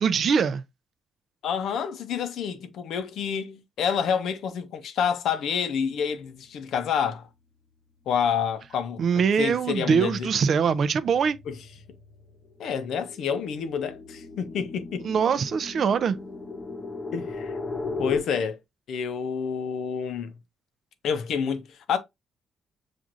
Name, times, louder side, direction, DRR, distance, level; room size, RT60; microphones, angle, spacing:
voice 1, 0.0-0.6 9.0-11.4 15.0-16.2, right 6 dB, 55° right, 0.4 m, -23 dB
voice 2, 1.4-7.3 8.1-9.0 9.4-10.3 11.5-11.6 12.6-15.1 17.1-17.5 18.0-18.6 18.9-20.3 21.0-22.0, left 7 dB, 75° left, 0.6 m, -28 dB
sound 1, 8.6-8.9 9.3-18.2, left 3 dB, 30° left, 0.8 m, -38 dB
5.9 x 2.5 x 2.5 m
cardioid pair, 90°, 0 cm